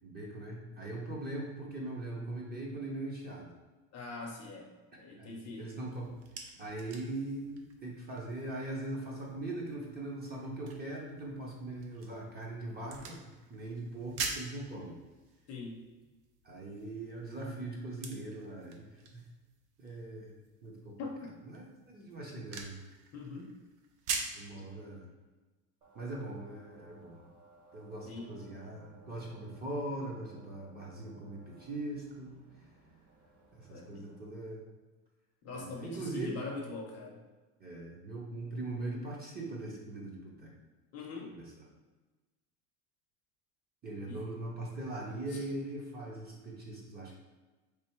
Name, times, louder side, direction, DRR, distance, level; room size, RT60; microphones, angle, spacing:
voice 1, 0.0-3.5 5.2-6.1 6.6-13.2 13.5-15.0 16.4-19.2 19.8-21.0 21.4-22.8 24.3-25.1 25.9-27.2 27.7-32.3 33.6-34.6 35.5-36.4 37.6-40.5 41.1-41.6 43.8-47.1, right 2 dB, 20° right, -3 dB, 0.7 m, -41 dB
voice 2, 3.9-5.7 15.5-15.8 21.0-21.2 23.1-23.5 28.0-28.4 33.7-34.1 35.4-37.2 40.9-41.3 44.1-44.2 45.3-45.5, left 3 dB, 35° left, 0 dB, 0.8 m, -42 dB
sound 1, 5.9-24.5, right 4 dB, 65° right, 0.8 m, -46 dB
sound 2, 25.8-34.3, right 3 dB, 50° right, 1.4 m, -59 dB
3.4 x 2.7 x 4.5 m, 1.2 s
supercardioid pair, 125°, 46 cm